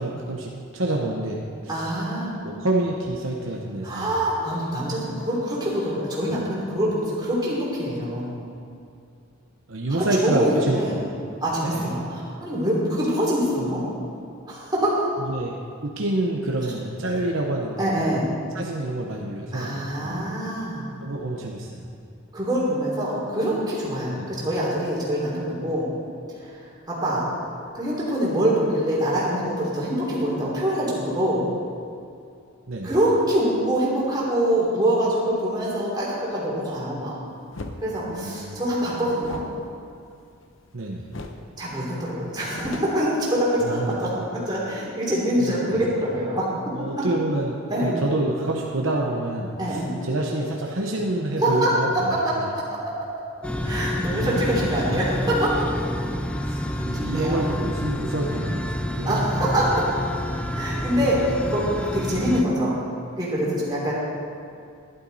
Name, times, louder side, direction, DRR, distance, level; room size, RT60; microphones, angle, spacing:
voice 1, 0.0-1.7 2.4-4.1 9.7-11.1 11.6-11.9 15.2-18.0 18.5-20.2 21.0-21.8 24.1-24.3 32.7-32.9 38.1-38.6 40.7-41.0 43.6-44.0 45.4-45.8 46.7-52.5 56.4-59.2, right 2 dB, 65° right, -1 dB, 1.0 m, -28 dB
voice 2, 1.7-2.3 3.8-8.4 10.0-11.0 11.4-13.8 14.5-15.1 17.8-18.3 19.5-20.9 22.3-25.9 26.4-26.6 26.9-27.2 27.7-31.4 32.8-37.2 37.8-39.4 41.6-46.4 46.9-47.0 47.7-48.0 49.6-49.9 51.4-51.7 52.5-53.1 53.6-55.7 57.0-57.4 59.0-59.9 60.5-62.8 63.2-63.9, right 1 dB, 20° right, -6 dB, 3.0 m, -25 dB
sound 1, 37.5-37.8 39.2-40.7 41.1-41.5 41.8-41.9 42.2-43.8, left 2 dB, 60° left, 0.8 m, -39 dB
sound 2, 53.4-62.4, left 1 dB, 5° left, 0.4 m, -28 dB
11.5 x 11.5 x 4.1 m, 2.4 s
head